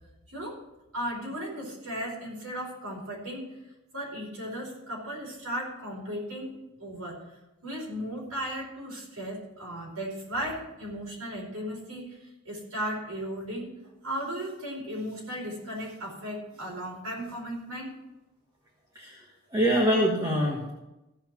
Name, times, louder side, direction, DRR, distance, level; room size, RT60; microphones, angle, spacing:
voice 1, 0.3-0.6 0.9-3.5 3.9-6.5 6.8-7.4 7.6-13.7 14.0-17.9, equal, 80° right, -2 dB, 4.6 m, -36 dB
voice 2, 18.9-19.3 19.5-20.7, equal, 15° right, -2 dB, 1.4 m, -24 dB
15.5 x 5.7 x 6.0 m, 0.99 s
head